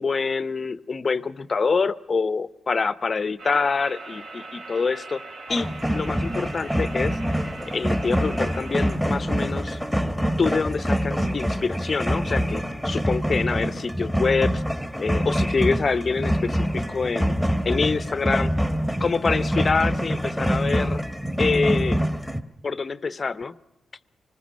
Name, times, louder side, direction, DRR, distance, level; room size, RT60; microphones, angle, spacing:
voice 1, 0.0-5.2 5.5-7.2 7.7-9.8 10.4-14.6 15.0-17.3 17.6-18.5 19.0-21.0 21.4-22.0 22.6-23.5, left 4 dB, 35° left, 16 dB, 0.7 m, -26 dB
sound 1, 3.4-9.0, right 3 dB, 65° right, 3.7 m, -41 dB
sound 2, 5.5-22.4, equal, 5° right, 1.2 m, -25 dB
25.5 x 20.0 x 6.3 m, 0.89 s
wide cardioid pair, 150°, 0 cm